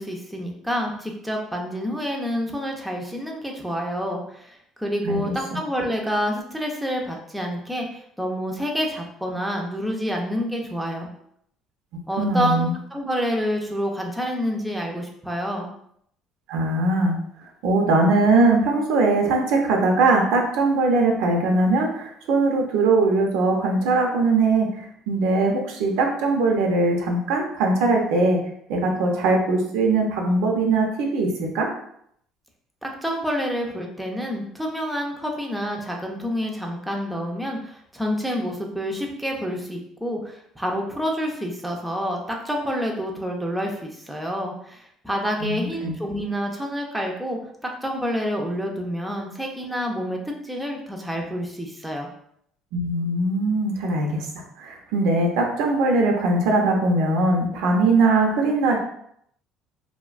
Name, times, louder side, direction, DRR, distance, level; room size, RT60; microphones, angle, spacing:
voice 1, 0.0-11.1 12.1-15.7 32.8-47.4 47.8-50.2 50.4-52.1, equal, 5° right, 0 dB, 0.4 m, -28 dB
voice 2, 12.2-12.7 16.5-17.2 17.6-28.4 28.7-31.3 31.5-31.7 45.4-45.9 52.7-54.3 54.6-58.8, right 3 dB, 80° right, 2 dB, 0.5 m, -21 dB
2.5 x 2.1 x 2.4 m, 0.70 s
cardioid pair, 115°, 0 cm